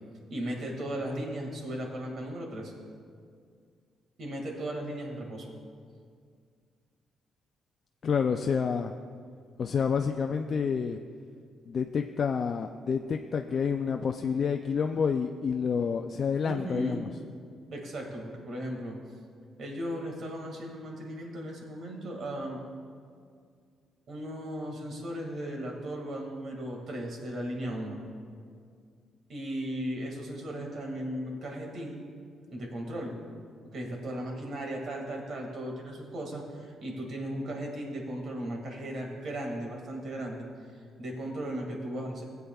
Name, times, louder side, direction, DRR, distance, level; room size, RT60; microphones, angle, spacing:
voice 1, 0.3-2.7 4.2-5.5 16.4-17.0 17.7-19.0 19.6-22.6 24.1-28.0 29.3-32.0 32.5-33.1 33.7-40.5 41.0-42.2, right 1 dB, 60° right, 1 dB, 2.0 m, -36 dB
voice 2, 8.0-8.9 9.6-11.0 11.7-17.1, left 6 dB, 50° left, 5 dB, 0.3 m, -28 dB
16.0 x 8.1 x 2.3 m, 2.2 s
cardioid pair, 90°, 0 cm